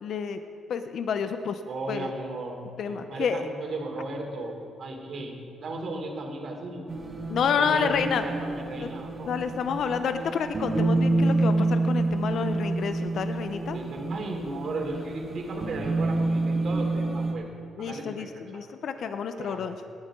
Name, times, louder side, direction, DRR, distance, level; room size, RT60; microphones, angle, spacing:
voice 1, 0.0-0.4 0.7-1.6 1.9-2.1 2.8-3.5 7.3-8.2 8.8-8.9 9.3-13.8 17.8-19.8, left 6 dB, 65° left, 8 dB, 0.7 m, -29 dB
voice 2, 1.7-2.6 2.8-5.3 5.6-6.8 7.6-9.4 13.7-17.5 17.8-18.3 18.5-18.6 19.4-19.7, right 2 dB, 55° right, 0 dB, 3.1 m, -35 dB
sound 1, 6.9-17.3, right 2 dB, 35° right, 1.9 m, -28 dB
19.0 x 11.5 x 3.7 m, 2.4 s
cardioid pair, 90°, 0 cm